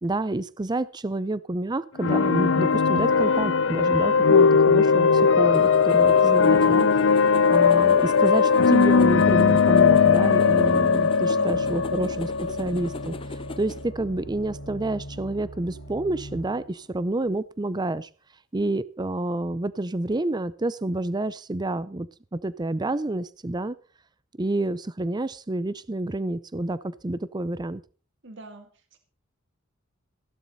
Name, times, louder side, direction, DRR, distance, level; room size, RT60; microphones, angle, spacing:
voice 1, 0.0-6.9 7.5-12.3 12.6-13.2 13.6-18.1 18.5-23.8 24.4-27.8, right 2 dB, 20° right, 0.5 m, -28 dB
sound 1, 2.0-13.7, left 5 dB, 70° left, 0.6 m, -19 dB
sound 2, 5.5-13.8, left 2 dB, 25° left, 0.8 m, -39 dB
voice 2, 11.3-11.7 28.2-29.0, right 2 dB, 65° right, 1.9 m, -45 dB
sound 3, 11.5-16.7 17.3-17.4, right 1 dB, 90° left, 2.1 m, -41 dB
15.5 x 11.5 x 4.1 m
head